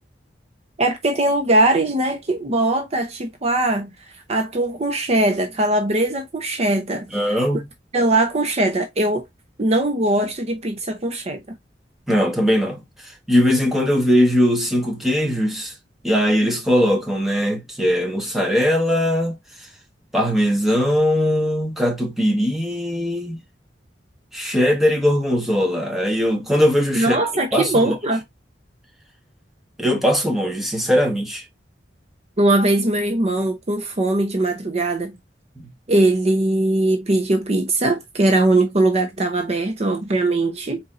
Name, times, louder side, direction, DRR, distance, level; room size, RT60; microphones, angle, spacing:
voice 1, 0.8-3.9 4.3-7.3 7.9-9.2 9.6-11.4 26.9-28.2 32.4-35.2 35.9-40.8, right 2 dB, 35° right, 0.7 m, -20 dB
voice 2, 7.1-7.6 12.1-15.7 16.0-19.4 20.1-23.4 24.3-27.2 27.5-27.9 29.8-31.4 35.6-35.7, equal, ahead, 1.2 m, -20 dB
4.3 x 4.1 x 2.5 m
head